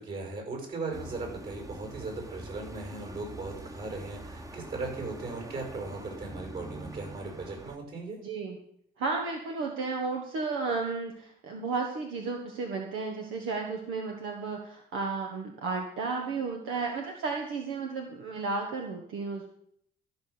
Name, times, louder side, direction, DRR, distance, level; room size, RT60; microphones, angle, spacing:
voice 1, 0.0-8.2, right 3 dB, 55° right, 2 dB, 6.0 m, -38 dB
sound 1, 0.9-7.8, right 2 dB, 15° right, 1.1 m, -44 dB
voice 2, 8.2-8.6 9.0-19.5, right 4 dB, 85° right, 2 dB, 1.4 m, -33 dB
13.5 x 6.1 x 6.8 m, 0.71 s
cardioid pair, 90°, 20 cm